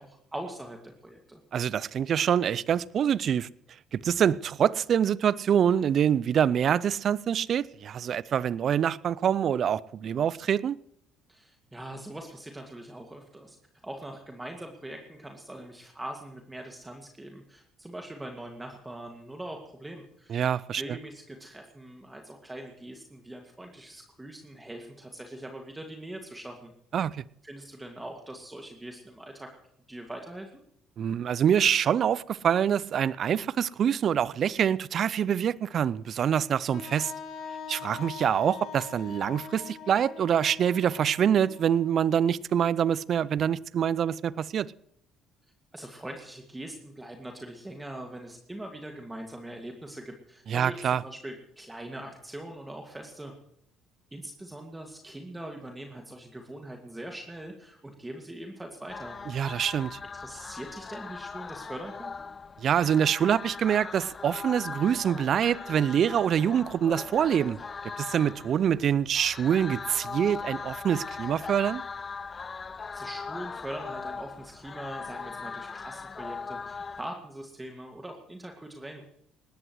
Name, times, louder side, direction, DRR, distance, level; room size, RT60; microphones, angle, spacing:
voice 1, 0.0-1.4 11.3-13.6 13.8-20.4 20.7-26.7 27.4-29.5 29.9-30.6 45.7-53.3 54.1-59.2 60.1-62.1 72.9-79.0, right 1 dB, 15° right, 2.1 m, -42 dB
voice 2, 1.5-3.5 3.9-10.8 20.3-20.8 26.9-27.2 31.0-37.1 37.7-44.7 50.5-51.0 59.3-60.0 62.6-67.6 68.0-71.8, right 8 dB, 55° right, 0.5 m, -25 dB
Wind instrument woodwind instrument, 36.7-42.5, left 7 dB, 60° left, 1.8 m, -43 dB
sound 1, 58.9-77.0, left 5 dB, 35° left, 0.5 m, -40 dB
20.0 x 18.5 x 3.2 m
hypercardioid pair, 55°, 0 cm